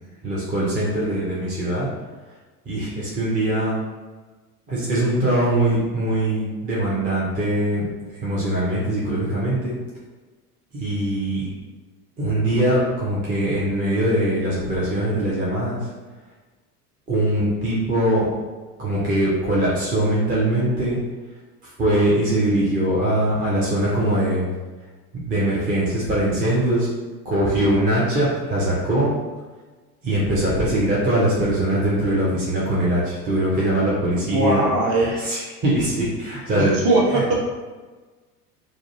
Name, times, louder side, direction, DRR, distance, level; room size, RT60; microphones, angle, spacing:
voice 1, 0.2-1.9 2.7-3.8 4.7-9.7 10.7-11.5 12.2-15.9 17.1-18.3 18.8-21.0 21.6-24.5 25.1-26.9 27.2-29.1 30.0-34.6 34.9-36.8 37.1-37.3, right 1 dB, 20° right, -7 dB, 0.5 m, -22 dB
voice 2, 34.3-35.2 36.5-37.3, right 2 dB, 40° right, -4 dB, 1.0 m, -20 dB
2.4 x 2.1 x 2.7 m, 1.3 s
figure-of-eight pair, 75°, 48 cm